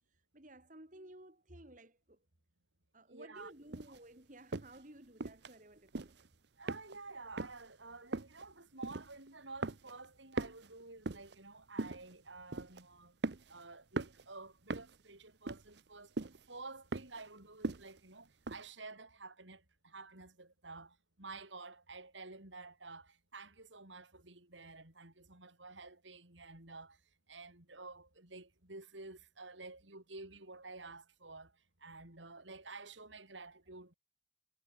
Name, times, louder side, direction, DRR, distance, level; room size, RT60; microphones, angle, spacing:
voice 1, 0.1-2.2 2.9-6.2, right 1 dB, 45° right, 2.9 m, -56 dB
voice 2, 3.1-3.8 6.6-13.1 13.5-16.1 16.5-27.0 27.3-33.9, right 3 dB, 80° right, 5.1 m, -51 dB
sound 1, 3.7-4.0 4.5-4.8 5.2-5.5 5.9-6.3 6.7-7.1 7.4-7.7 8.1-8.4 8.8-9.3 9.6-10.1 10.3-11.4 11.8-12.1 12.5-12.8 13.2-13.6 14.0-14.2 14.7-15.0 15.5-15.9 16.2-16.4 16.9-17.2 17.6-18.0 18.5-18.6, right 3 dB, 65° right, 0.8 m, -40 dB
head